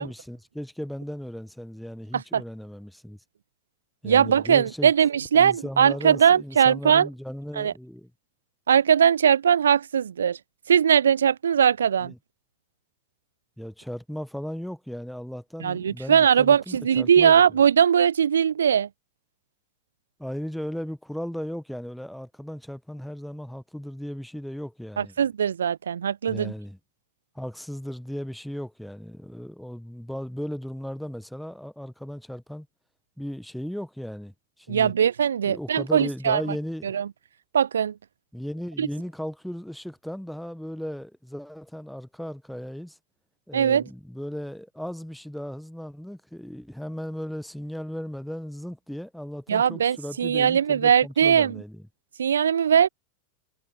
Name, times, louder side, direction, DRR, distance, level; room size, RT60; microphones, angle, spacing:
voice 1, 0.0-3.2 4.0-4.9 5.3-8.1 12.0-12.2 13.6-17.4 20.2-25.1 26.3-26.8 27.3-32.7 33.2-34.9 35.4-36.9 38.3-43.0 43.5-51.8, equal, ahead, 1.3 m, -36 dB
voice 2, 4.0-7.1 7.6-7.7 8.7-10.4 10.7-12.1 15.6-18.9 25.0-26.5 34.7-36.4 36.9-37.1 37.5-37.9 38.8-38.9 43.5-43.8 49.5-51.5 52.2-52.9, right 8 dB, 65° right, 0.3 m, -20 dB
figure-of-eight pair, 90°, 0 cm